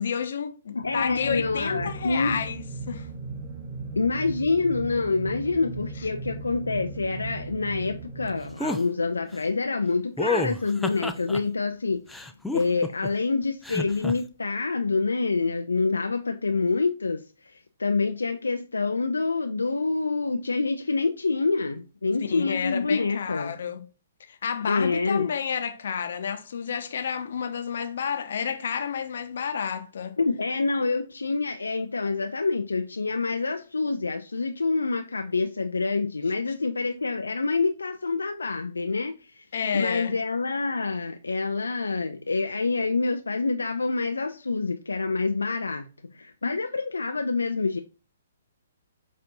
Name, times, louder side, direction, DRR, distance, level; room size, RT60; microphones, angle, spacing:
voice 1, 0.0-3.1 22.3-23.8 24.3-30.2 39.5-40.1, left 7 dB, 65° left, 0.7 m, -30 dB
voice 2, 0.7-2.4 4.0-23.5 24.6-25.3 30.2-39.5 39.7-47.8, left 3 dB, 90° left, 0.3 m, -27 dB
sound 1, 0.7-9.1, right 4 dB, 30° right, 2.0 m, -38 dB
sound 2, 8.6-8.8 10.2-11.4 12.1-13.1 13.6-14.1, left 3 dB, 5° left, 0.3 m, -29 dB
6.7 x 2.6 x 2.7 m
hypercardioid pair, 130°, 0 cm